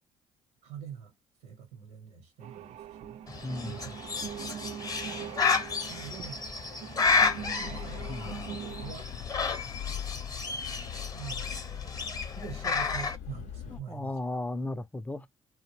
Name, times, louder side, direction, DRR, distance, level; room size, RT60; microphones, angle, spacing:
voice 1, 0.6-1.1 1.4-4.1 5.9-6.4 7.6-9.1 11.1-14.2, right 7 dB, 85° right, 0.8 m, -45 dB
sound 1, 2.4-8.9, right 9 dB, 65° right, 0.4 m, -42 dB
Bird, 3.3-13.2, left 4 dB, 30° left, 0.7 m, -31 dB
voice 2, 3.4-3.8 8.1-8.3 13.7-15.3, left 2 dB, 10° left, 0.3 m, -35 dB
sound 2, 7.0-13.8, left 10 dB, 75° left, 0.5 m, -41 dB
2.3 x 2.0 x 3.0 m
supercardioid pair, 65°, 13 cm